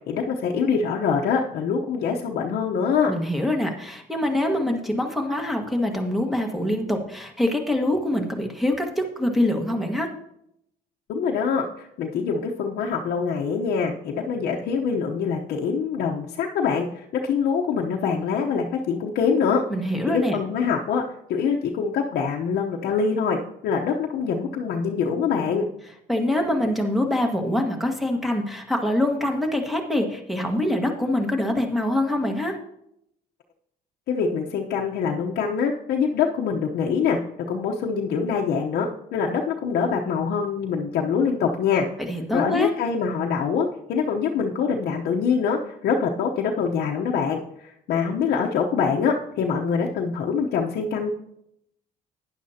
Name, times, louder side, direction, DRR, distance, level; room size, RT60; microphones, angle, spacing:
voice 1, 0.1-3.1 11.1-19.6 20.1-21.0 21.3-25.7 34.1-37.2 37.5-41.9 42.3-51.1, left 6 dB, 70° left, -1 dB, 0.9 m, -24 dB
voice 2, 3.1-10.1 19.7-20.4 26.1-32.6 42.1-42.7, left 1 dB, ahead, 3 dB, 1.6 m, -24 dB
11.5 x 10.0 x 2.8 m, 0.76 s
cardioid pair, 110°, 17 cm